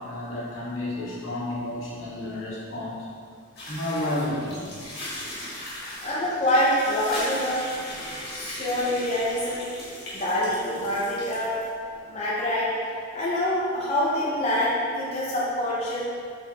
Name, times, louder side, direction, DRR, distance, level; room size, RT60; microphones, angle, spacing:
voice 1, 0.0-3.0 3.7-4.7 5.7-5.9 10.2-10.3, left 1 dB, 75° left, -6 dB, 0.9 m, -31 dB
sound 1, 3.6-11.7, left 1 dB, 45° left, 1.2 m, -38 dB
voice 2, 6.0-7.7 8.2-9.7 10.1-11.6 11.9-12.8 13.1-16.0, left 1 dB, 30° left, -8 dB, 0.6 m, -25 dB
4.3 x 3.3 x 2.6 m, 2.3 s
head